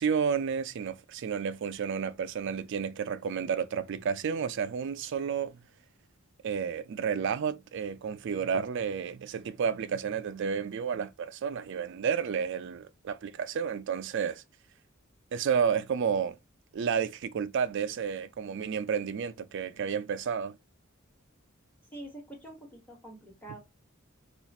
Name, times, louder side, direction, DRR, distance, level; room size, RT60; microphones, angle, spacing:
voice 1, 0.0-5.6 6.4-14.4 15.3-16.4 16.7-20.6, right 7 dB, 60° right, 0.4 m, -31 dB
voice 2, 21.9-23.6, right 1 dB, 10° left, 1.2 m, -45 dB
2.5 x 2.4 x 4.0 m
head